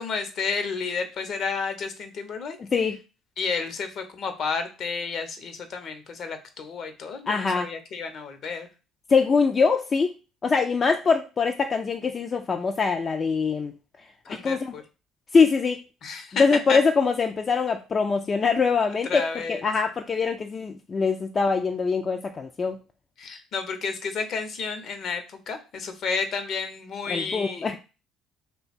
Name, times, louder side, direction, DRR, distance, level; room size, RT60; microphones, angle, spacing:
voice 1, 0.0-2.6 3.4-8.7 14.3-14.8 16.0-16.4 16.7-16.8 19.1-19.6 23.2-27.7, left 5 dB, 60° left, 8 dB, 0.7 m, -31 dB
voice 2, 2.6-3.0 7.3-7.7 9.1-10.1 10.4-13.7 14.3-14.7 15.3-15.8 16.3-22.8 27.1-27.8, left 5 dB, 35° left, 4 dB, 0.3 m, -23 dB
2.8 x 2.2 x 4.1 m, 0.32 s
supercardioid pair, 70°, 0 cm